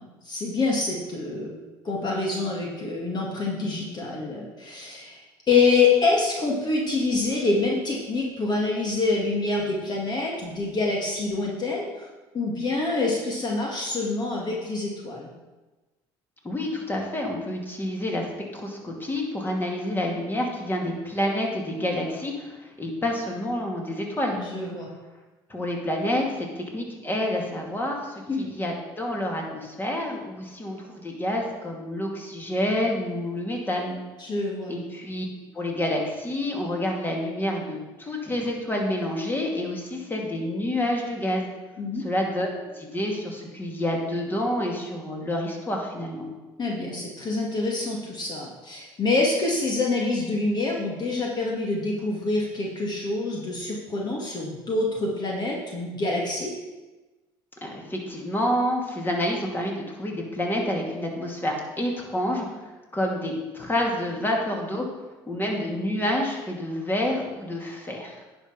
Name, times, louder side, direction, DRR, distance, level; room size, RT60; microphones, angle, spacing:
voice 1, 0.0-1.5 1.8-5.2 5.5-12.1 12.3-15.3 24.4-24.9 28.3-28.5 34.2-34.7 41.8-42.0 46.6-56.5, left 3 dB, 40° left, -2 dB, 2.1 m, -26 dB
voice 2, 16.4-18.3 18.5-24.7 25.5-34.0 34.7-35.3 35.5-41.5 42.0-42.5 42.7-46.3 57.6-62.5 62.9-68.2, left 1 dB, 20° left, 0 dB, 2.5 m, -28 dB
9.9 x 5.5 x 5.6 m, 1.2 s
supercardioid pair, 80°, 11 cm